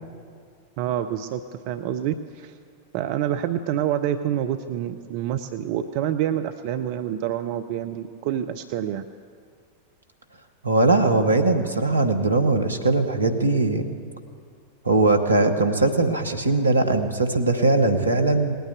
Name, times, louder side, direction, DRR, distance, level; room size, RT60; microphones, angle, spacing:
voice 1, 0.8-1.4 1.7-2.5 2.9-9.0, right 10 dB, 45° right, 9 dB, 0.5 m, -27 dB
voice 2, 10.6-13.8 14.8-18.6, right 2 dB, 80° right, 6 dB, 1.1 m, -20 dB
18.5 x 9.3 x 8.3 m, 2.1 s
figure-of-eight pair, 90°, 0 cm